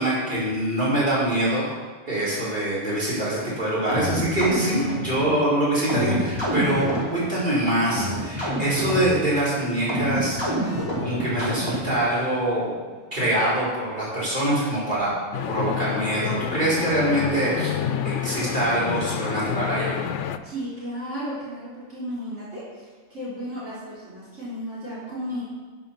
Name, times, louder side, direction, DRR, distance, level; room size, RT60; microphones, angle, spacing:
voice 1, 0.0-1.7 2.1-10.7 11.0-12.8 13.1-15.1 15.5-17.7 18.0-19.9, right 1 dB, 40° right, -8 dB, 5.2 m, -24 dB
sound 1, 3.9-12.1, right 1 dB, 20° right, 4.4 m, -28 dB
sound 2, 15.3-20.4, left 8 dB, 75° left, 1.0 m, -28 dB
voice 2, 20.4-25.4, equal, 75° right, -9 dB, 3.8 m, -34 dB
12.0 x 10.0 x 5.8 m, 1.4 s
omnidirectional pair, 1.3 m